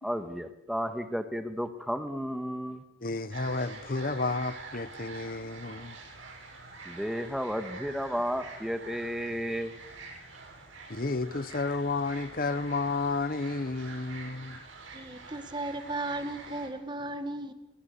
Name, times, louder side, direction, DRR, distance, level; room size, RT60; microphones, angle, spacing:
voice 1, 0.0-2.8 6.9-9.7, equal, ahead, 1.9 m, -33 dB
voice 2, 3.0-6.0 10.9-14.6, left 3 dB, 45° left, 1.0 m, -31 dB
sound 1, 3.3-16.7, right 3 dB, 80° right, 8.0 m, -46 dB
voice 3, 14.9-17.5, right 2 dB, 25° right, 2.0 m, -35 dB
29.5 x 23.0 x 7.0 m
head